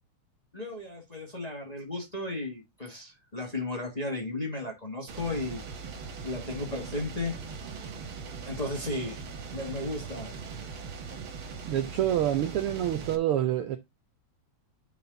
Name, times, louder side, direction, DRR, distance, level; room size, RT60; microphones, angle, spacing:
voice 1, 0.5-5.6 6.2-7.3 8.4-9.2 9.5-10.3, left 2 dB, 20° left, 1.4 m, -34 dB
sound 1, 5.1-13.2, right 5 dB, 50° right, 1.9 m, -40 dB
voice 2, 11.6-13.8, right 11 dB, 85° right, 1.2 m, -27 dB
10.5 x 4.2 x 3.9 m
omnidirectional pair, 3.3 m